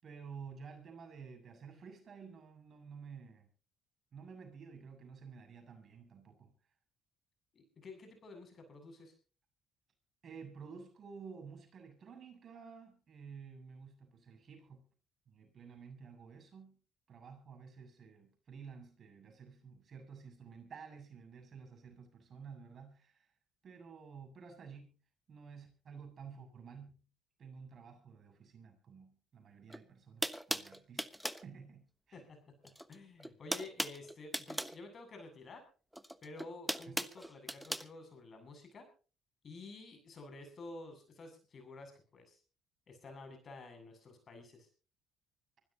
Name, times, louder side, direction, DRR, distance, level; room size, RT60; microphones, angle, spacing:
voice 1, 0.0-3.5 4.1-6.5 10.2-14.9 15.3-16.8 17.1-23.3 23.6-25.0 25.3-27.1 27.4-32.2 36.9-37.0, right 6 dB, 50° right, 5 dB, 7.1 m, -52 dB
voice 2, 7.5-9.1 32.1-32.4 32.6-35.6 36.2-38.9 39.4-42.4 42.9-44.7, left 3 dB, 45° left, 6 dB, 7.8 m, -51 dB
sound 1, 29.7-29.8 30.2-31.5 32.6-33.0 33.2-34.8 35.9-37.9, equal, 5° right, 1.2 m, -38 dB
24.5 x 16.5 x 2.9 m, 0.37 s
supercardioid pair, 70°, 0 cm